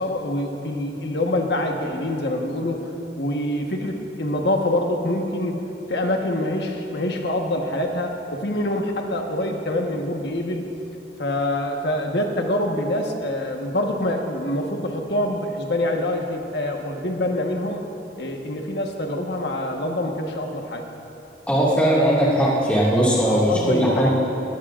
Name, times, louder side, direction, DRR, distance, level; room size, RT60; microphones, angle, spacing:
voice 1, 0.0-2.9 3.2-10.7 11.2-17.8 18.2-20.8 23.2-24.1, left 1 dB, 65° left, 2 dB, 1.3 m, -25 dB
voice 2, 21.5-24.1, equal, 10° left, -7 dB, 2.1 m, -19 dB
21.0 x 15.0 x 2.5 m, 2.9 s
head